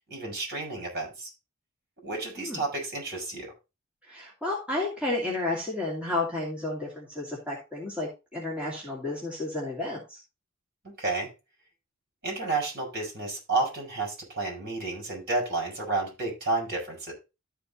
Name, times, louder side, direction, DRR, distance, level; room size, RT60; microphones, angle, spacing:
voice 1, 0.1-1.3 2.0-3.5 10.8-11.3 12.2-17.1, right 3 dB, 50° right, 0 dB, 6.1 m, -31 dB
voice 2, 4.1-10.2, left 2 dB, 5° right, -4 dB, 2.7 m, -32 dB
13.5 x 4.6 x 4.1 m, 0.27 s
head